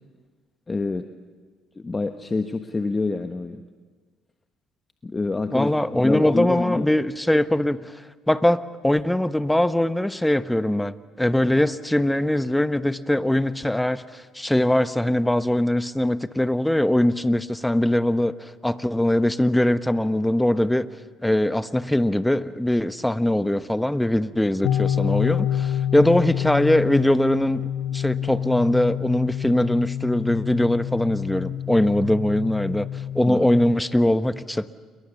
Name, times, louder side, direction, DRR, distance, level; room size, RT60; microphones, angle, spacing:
voice 1, 0.7-1.0 1.8-3.6 5.0-5.8 6.0-6.9 33.2-33.5, left 3 dB, 25° left, 7 dB, 1.3 m, -26 dB
voice 2, 5.5-20.9 21.2-34.7, left 1 dB, 5° left, 12 dB, 1.1 m, -22 dB
sound 1, 24.6-33.7, left 10 dB, 70° left, 1.7 m, -27 dB
28.5 x 22.5 x 7.1 m, 1.5 s
supercardioid pair, 65°, 0 cm